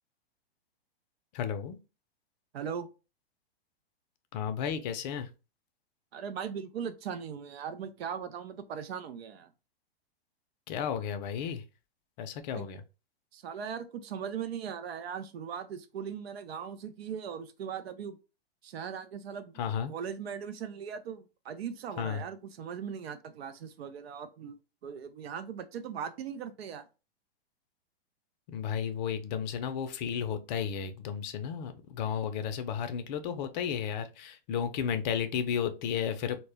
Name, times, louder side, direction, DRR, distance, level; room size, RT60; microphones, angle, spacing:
voice 1, 1.3-1.8 4.3-5.3 10.7-11.6 12.2-12.8 19.6-19.9 22.0-22.2 28.5-36.4, left 8 dB, 45° left, 0.5 m, -33 dB
voice 2, 2.5-2.9 6.1-9.5 12.5-12.7 13.3-18.2 18.6-19.5 19.9-24.6 24.8-26.9, right 7 dB, 80° right, 0.5 m, -39 dB
2.1 x 2.1 x 3.3 m
hypercardioid pair, 120°, 31 cm